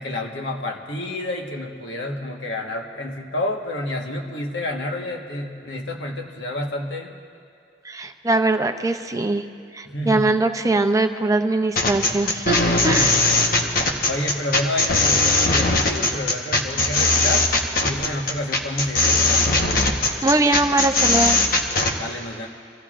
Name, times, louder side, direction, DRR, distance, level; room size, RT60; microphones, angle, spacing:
voice 1, 0.0-7.2 9.8-10.3 12.8-13.7 14.1-17.5 17.8-19.5 22.0-22.5, left 1 dB, 80° left, 1 dB, 1.4 m, -29 dB
voice 2, 7.8-9.5 9.7-13.2 20.2-21.4, right 2 dB, 20° right, 6 dB, 0.5 m, -21 dB
sound 1, 11.8-21.9, left 2 dB, 55° left, 1.2 m, -19 dB
26.0 x 15.5 x 2.5 m, 2.4 s
head